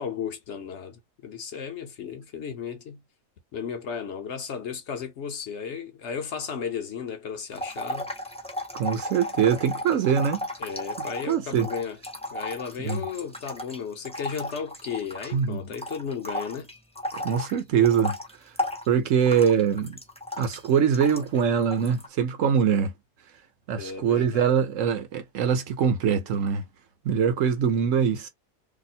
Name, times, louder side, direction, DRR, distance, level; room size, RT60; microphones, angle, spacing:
voice 1, 0.0-3.0 3.5-8.1 10.6-12.0 12.3-16.7 23.7-24.5, left 6 dB, 60° left, 0.9 m, -34 dB
sound 1, 7.5-15.4 15.7-21.4 21.7-22.1, left 1 dB, 5° left, 0.5 m, -34 dB
voice 2, 8.7-10.5 11.3-11.7 12.8-13.0 15.3-15.6 17.1-18.2 18.9-20.0 20.4-22.9 23.7-26.7 27.0-28.3, right 7 dB, 65° right, 1.1 m, -23 dB
2.9 x 2.0 x 4.1 m
omnidirectional pair, 1.5 m